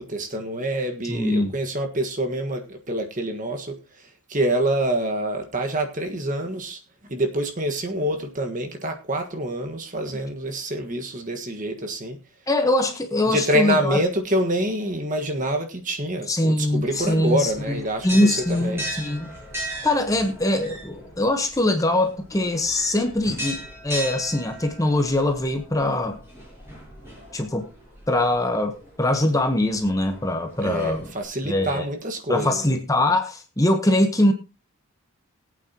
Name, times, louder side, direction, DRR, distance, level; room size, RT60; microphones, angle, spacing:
voice 1, 0.0-6.8 7.1-12.2 13.2-18.8 30.6-32.7, right 1 dB, 35° right, 5 dB, 1.5 m, -26 dB
voice 2, 1.0-1.5 12.5-14.0 16.3-17.5 18.0-19.3 19.8-26.2 27.3-27.7 28.1-31.1 31.4-31.8 32.3-34.3, left 1 dB, 15° left, 6 dB, 1.1 m, -22 dB
sound 1, 16.8-31.2, equal, 10° right, 7.7 m, -38 dB
20.5 x 8.6 x 2.9 m, 0.28 s
head